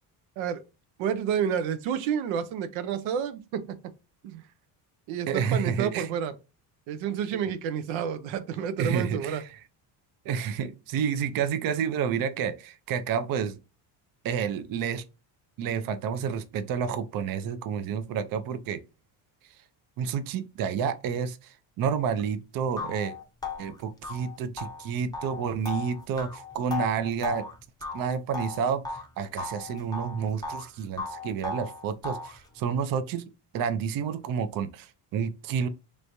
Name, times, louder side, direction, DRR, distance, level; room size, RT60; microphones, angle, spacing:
voice 1, 1.0-3.6 4.2-4.4 5.1-6.3 6.9-9.4, right 8 dB, 90° right, 0.7 m, -30 dB
voice 2, 5.3-6.1 7.3-7.4 8.8-9.6 10.3-13.6 14.2-15.0 15.6-18.8 20.0-23.1 23.6-27.5 27.9-33.3 33.5-35.7, right 7 dB, 50° right, 0.5 m, -30 dB
sound 1, 22.2-22.3 22.8-29.1 29.4-30.7 31.0-32.4, left 3 dB, 10° left, 0.5 m, -36 dB
3.3 x 3.1 x 2.6 m
cardioid pair, 135°, 46 cm